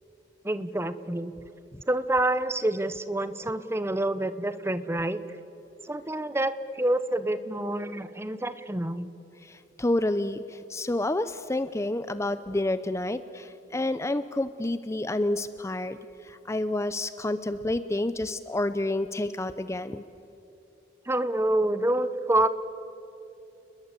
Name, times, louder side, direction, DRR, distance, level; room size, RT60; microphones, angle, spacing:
voice 1, 0.4-1.3 1.9-5.2 5.8-9.1 21.1-22.5, right 1 dB, 15° right, 13 dB, 0.9 m, -27 dB
voice 2, 9.4-16.0 16.2-20.0, left 1 dB, 15° left, 12 dB, 0.6 m, -29 dB
29.5 x 21.0 x 8.3 m, 3.0 s
head